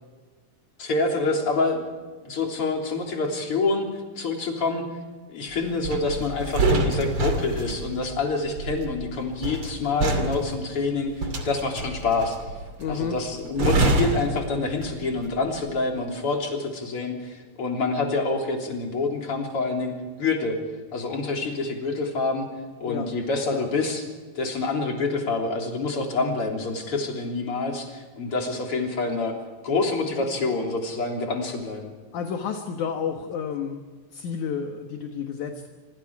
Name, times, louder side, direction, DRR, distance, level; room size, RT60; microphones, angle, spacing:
voice 1, 0.8-1.9 2.2-3.9 4.2-4.8 5.3-11.1 11.4-12.4 12.9-19.9 20.2-20.6 20.9-22.5 22.8-24.1 24.4-29.3 29.6-31.9, left 3 dB, 40° left, 1 dB, 4.3 m, -27 dB
sound 1, 5.8-15.2 15.5-15.8, right 2 dB, 40° right, 3.3 m, -27 dB
voice 2, 12.8-13.2 22.9-23.1 23.5-23.6 32.1-33.8 34.1-35.7, left 7 dB, 65° left, 4 dB, 2.8 m, -30 dB
27.0 x 26.0 x 4.9 m, 1.4 s
omnidirectional pair, 3.9 m